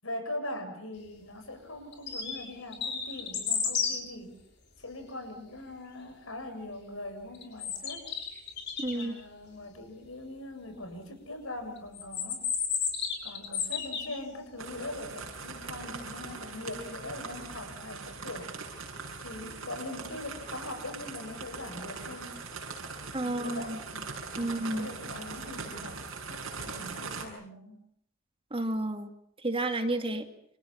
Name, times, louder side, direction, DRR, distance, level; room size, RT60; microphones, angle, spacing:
voice 1, 0.0-4.4 4.8-8.1 8.9-12.4 13.2-18.5 19.2-22.3 23.2-27.9, left 1 dB, 75° left, 6 dB, 7.4 m, -41 dB
sound 1, 1.9-2.5 2.7-4.0 7.3-9.0 11.9-14.2, left 6 dB, 55° left, 7.1 m, -32 dB
voice 2, 8.8-9.1 23.1-23.8 24.4-24.9 28.5-29.1 29.4-30.3, right 2 dB, 25° right, 6 dB, 2.5 m, -31 dB
sound 2, 14.6-27.2, right 4 dB, 70° right, 7.5 m, -41 dB
30.0 x 28.0 x 5.9 m, 0.65 s
head